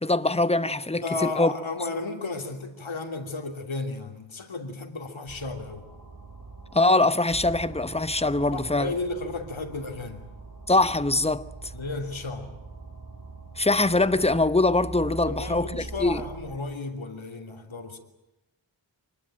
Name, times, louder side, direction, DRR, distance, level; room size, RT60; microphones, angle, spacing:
voice 1, 0.0-1.5 6.7-8.9 10.7-11.5 13.6-16.2, left 2 dB, 15° left, 1.0 m, -23 dB
voice 2, 1.0-5.8 8.5-10.2 11.7-12.5 15.2-18.0, left 3 dB, 85° left, 3.0 m, -33 dB
sound 1, 5.3-16.6, right 3 dB, 45° right, 7.4 m, -42 dB
25.5 x 20.5 x 8.9 m
wide cardioid pair, 65°, 46 cm